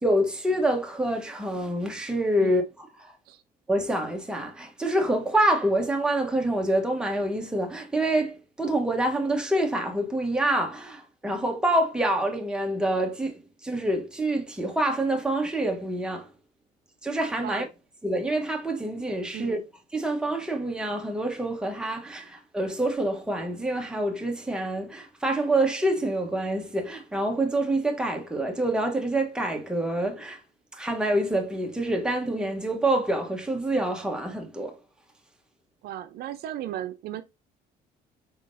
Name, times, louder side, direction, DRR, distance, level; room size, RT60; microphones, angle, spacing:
voice 1, 0.0-2.6 3.7-16.3 17.0-17.7 18.0-19.6 19.9-30.4 30.7-34.8, right 1 dB, 5° right, 1.0 m, -26 dB
voice 2, 19.3-19.7 35.8-37.2, right 12 dB, 70° right, 0.5 m, -36 dB
4.2 x 3.7 x 2.6 m
cardioid pair, 110°, 17 cm